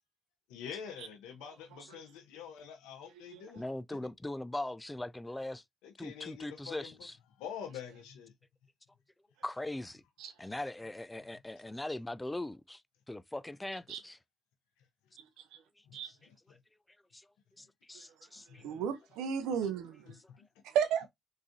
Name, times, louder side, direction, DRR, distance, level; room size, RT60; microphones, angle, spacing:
voice 1, 0.5-3.6 5.8-6.9 7.4-8.3 15.9-16.0 16.3-16.4 18.5-18.8 20.3-20.5, left 8 dB, 90° left, 0.8 m, -46 dB
voice 2, 1.4-2.0 3.1-3.5 10.2-10.3 13.9-14.0 15.2-15.3 15.5-15.6 15.9-16.1 18.6-20.1 20.6-21.1, right 8 dB, 85° right, 0.6 m, -35 dB
voice 3, 3.6-5.6 6.0-7.2 9.4-10.0 10.4-12.8 13.1-14.2 16.0-16.1 17.1-17.3 17.6-18.6, left 1 dB, 15° left, 0.4 m, -40 dB
3.6 x 3.2 x 2.6 m
supercardioid pair, 50°, 0 cm